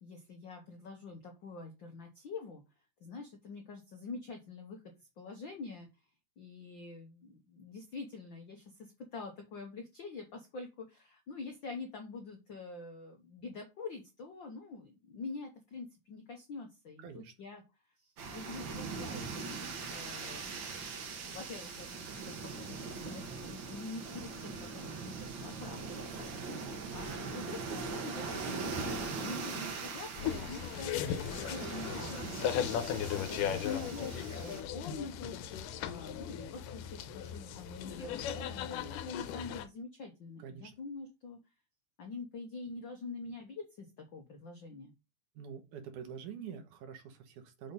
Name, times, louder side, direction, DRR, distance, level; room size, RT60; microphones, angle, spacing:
voice 1, 0.0-2.6 3.0-5.9 6.4-17.6 18.0-20.6 21.2-31.1 31.4-32.8 33.1-41.4 42.0-44.9, left 3 dB, 75° left, 3 dB, 1.1 m, -46 dB
voice 2, 17.0-17.3 40.4-40.7 45.4-47.7, right 7 dB, 75° right, 6 dB, 2.6 m, -46 dB
sound 1, 18.2-34.6, right 4 dB, 55° right, 1.4 m, -41 dB
sound 2, 30.2-39.7, left 9 dB, 90° left, 2.2 m, -37 dB
6.5 x 4.0 x 5.3 m, 0.26 s
omnidirectional pair, 3.7 m